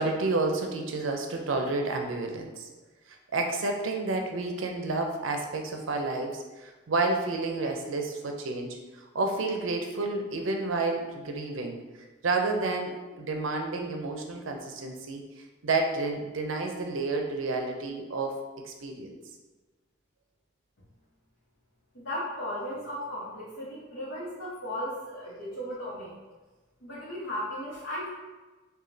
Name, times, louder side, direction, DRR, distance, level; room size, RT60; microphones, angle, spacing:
voice 1, 0.0-2.7 3.1-11.8 12.2-15.2 15.6-18.4 18.6-19.1, right 3 dB, 80° right, 3 dB, 0.5 m, -30 dB
voice 2, 21.9-26.1 26.8-28.1, equal, 65° left, -10 dB, 1.0 m, -36 dB
4.9 x 2.3 x 2.7 m, 1.2 s
head